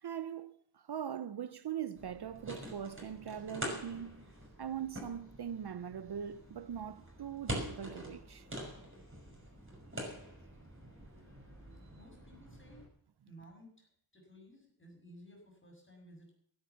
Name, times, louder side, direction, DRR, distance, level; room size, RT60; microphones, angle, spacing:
voice 1, 0.0-4.3 4.6-8.5, right 9 dB, 55° right, 0.6 m, -41 dB
sound 1, 2.0-12.9, equal, 25° right, 5.9 m, -45 dB
voice 2, 11.9-12.9 13.2-13.9 14.1-16.3, equal, 25° left, 6.7 m, -56 dB
15.5 x 10.5 x 7.2 m
wide cardioid pair, 110°, 46 cm